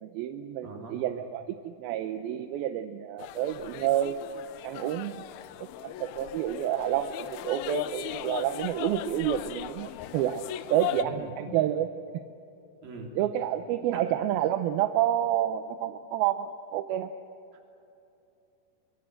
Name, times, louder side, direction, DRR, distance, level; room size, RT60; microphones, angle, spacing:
voice 1, 0.0-4.2 4.6-5.2 5.8-10.4 10.7-11.9 13.2-17.1, right 12 dB, 90° right, 8 dB, 2.6 m, -29 dB
voice 2, 0.6-1.0 10.9-11.6 12.8-13.1 13.9-14.0, right 2 dB, 75° right, 1 dB, 5.2 m, -41 dB
sound 1, 3.2-11.0, left 14 dB, 90° left, 2.7 m, -38 dB
24.5 x 24.0 x 7.7 m, 2.8 s
omnidirectional pair, 4.2 m